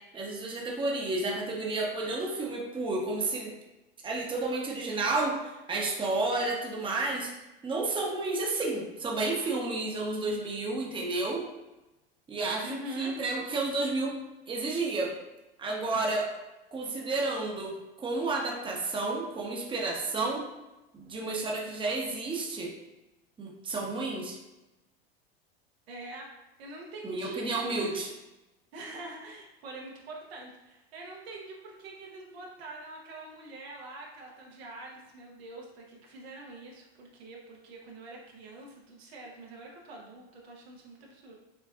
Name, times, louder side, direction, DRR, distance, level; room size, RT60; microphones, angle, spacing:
voice 1, 0.1-3.5 4.0-7.3 7.6-11.4 12.3-14.1 14.5-15.1 15.6-16.3 16.7-20.5 20.9-22.7 23.4-24.4 27.0-28.1, right 2 dB, 15° right, -2 dB, 0.9 m, -31 dB
voice 2, 12.6-13.1 25.9-28.0 28.7-41.3, right 2 dB, 80° right, -1 dB, 1.1 m, -45 dB
6.0 x 2.5 x 2.4 m, 1.0 s
hypercardioid pair, 105°, 31 cm